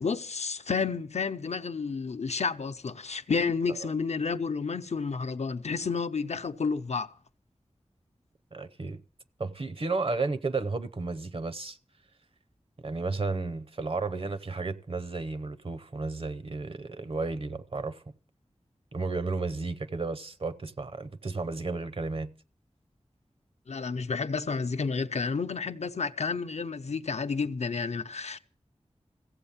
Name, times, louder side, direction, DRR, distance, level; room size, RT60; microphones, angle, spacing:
voice 1, 0.0-7.1 23.7-28.4, left 5 dB, 70° left, 0.7 m, -31 dB
voice 2, 8.5-9.0 9.4-11.8 12.8-18.0 18.9-22.3, right 3 dB, 55° right, 0.7 m, -33 dB
15.5 x 7.8 x 7.2 m
wide cardioid pair, 80°, 12 cm